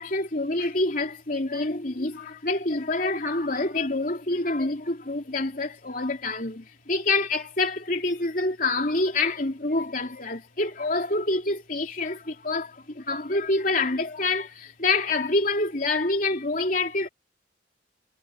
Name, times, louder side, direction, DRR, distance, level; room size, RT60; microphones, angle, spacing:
voice 1, 0.0-17.1, left 2 dB, 50° left, 3.1 m, -27 dB
head